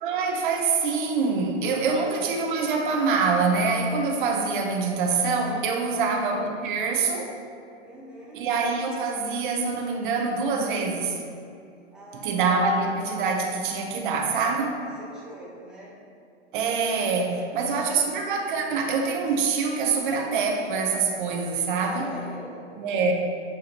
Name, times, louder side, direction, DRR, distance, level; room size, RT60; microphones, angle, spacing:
voice 1, 0.0-7.3 8.3-11.2 12.2-14.7 16.5-22.1 22.8-23.1, right 4 dB, 45° right, 2 dB, 0.9 m, -25 dB
voice 2, 1.8-2.2 5.8-6.2 7.8-8.4 11.9-12.4 14.8-16.0 17.3-17.8 21.9-23.0, right 1 dB, ahead, -8 dB, 1.1 m, -43 dB
7.5 x 4.8 x 2.9 m, 2.4 s
hypercardioid pair, 145°, 35 cm